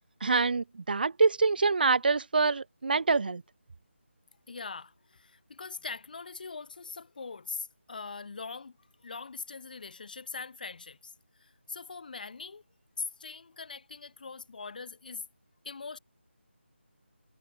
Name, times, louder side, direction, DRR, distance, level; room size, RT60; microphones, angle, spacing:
voice 1, 0.2-3.4, right 4 dB, 50° right, 0.5 m, -25 dB
voice 2, 4.5-8.8 9.0-11.1 11.4-12.6 13.0-15.3 15.6-16.0, left 4 dB, 45° left, 4.1 m, -41 dB
figure-of-eight pair, 165°, 7 cm